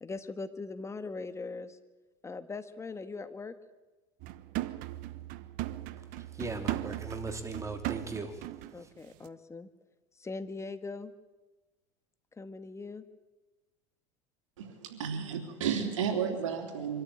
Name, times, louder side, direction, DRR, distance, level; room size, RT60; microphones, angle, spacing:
voice 1, 0.0-1.8 2.2-3.5 8.7-9.7 10.2-11.1 12.4-13.0, left 3 dB, 15° left, 1.6 m, -40 dB
sound 1, 4.2-8.8 9.1-9.3, right 16 dB, 60° right, 1.1 m, -38 dB
voice 2, 6.3-8.4 8.8-8.9, right 3 dB, 20° right, 3.2 m, -38 dB
voice 3, 14.6-17.0, right 7 dB, 90° right, 3.3 m, -32 dB
24.5 x 13.5 x 9.8 m
supercardioid pair, 100°, 16 cm